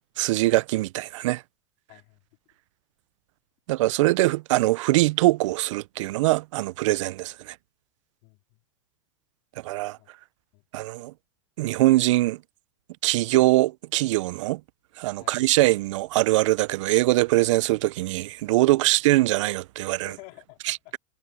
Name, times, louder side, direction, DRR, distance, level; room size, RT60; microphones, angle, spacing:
voice 1, 0.2-1.4 3.7-7.5 9.6-10.0 10.7-11.1 11.6-12.4 13.0-14.6 15.0-20.1 20.7-21.0, right 18 dB, 70° right, 0.4 m, -22 dB
voice 2, 1.9-2.2 8.2-8.6 10.0-10.1 10.5-10.6 15.2-15.4 18.8-19.0 20.0-21.0, left 26 dB, 50° left, 3.7 m, -50 dB
supercardioid pair, 140°, 17 cm